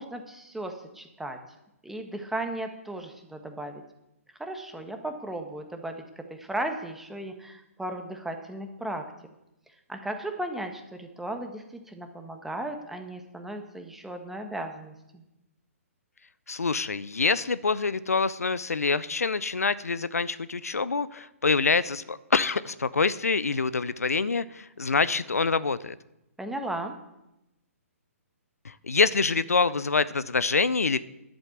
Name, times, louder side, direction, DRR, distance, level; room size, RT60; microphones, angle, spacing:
voice 1, 0.0-1.4 1.8-3.8 4.4-9.0 9.9-15.2 26.4-26.9, right 1 dB, 5° right, 5 dB, 1.4 m, -36 dB
voice 2, 16.5-26.0 28.6-31.0, left 4 dB, 85° left, 16 dB, 0.6 m, -26 dB
11.0 x 8.1 x 7.2 m, 0.89 s
figure-of-eight pair, 130°, 8 cm